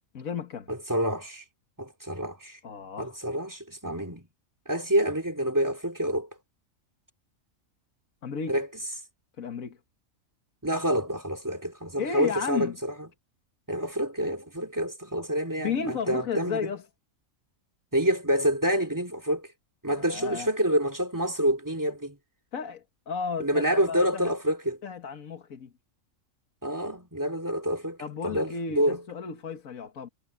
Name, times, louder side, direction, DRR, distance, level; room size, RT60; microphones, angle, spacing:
voice 1, 0.1-0.7 2.6-3.2 8.2-8.6 9.4-9.8 12.0-12.8 15.6-16.8 19.9-20.5 22.5-24.3 24.8-25.7 28.0-30.1, left 6 dB, 80° left, 1.9 m, -33 dB
voice 2, 0.7-1.4 1.8-2.6 3.0-4.3 4.7-6.3 8.5-8.7 10.6-12.9 13.7-16.7 17.9-19.5 19.8-22.2 23.4-24.8 26.6-28.0 28.2-29.0, equal, 15° right, 2.8 m, -27 dB
omnidirectional pair, 1.4 m